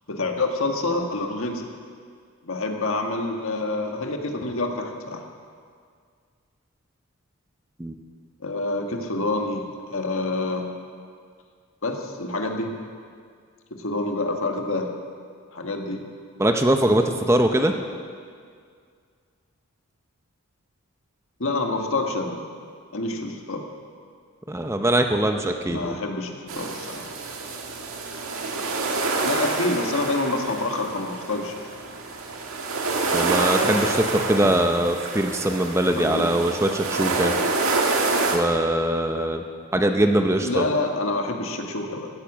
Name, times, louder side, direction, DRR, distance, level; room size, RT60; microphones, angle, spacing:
voice 1, 0.1-1.6 2.4-5.2 8.4-10.7 11.8-12.7 13.7-14.9 15.5-16.0 21.4-22.4 22.9-23.6 25.6-27.0 29.2-31.6 35.9-36.5 40.4-42.1, left 2 dB, 65° left, 3 dB, 1.5 m, -27 dB
voice 2, 16.4-17.8 24.5-26.0 33.1-37.3 38.3-39.4 39.7-40.6, right 1 dB, 10° right, 5 dB, 0.6 m, -22 dB
sound 1, 26.5-38.4, right 3 dB, 75° right, 1.7 m, -27 dB
16.0 x 9.7 x 7.3 m, 2.1 s
head